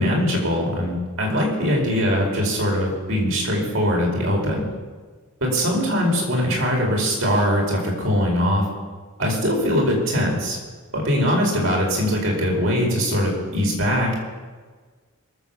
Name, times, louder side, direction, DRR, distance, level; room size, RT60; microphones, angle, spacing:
voice 1, 0.0-4.6 5.4-8.6 9.2-10.6 10.9-14.1, equal, 70° right, -1 dB, 4.8 m, -21 dB
22.0 x 7.4 x 7.1 m, 1.4 s
head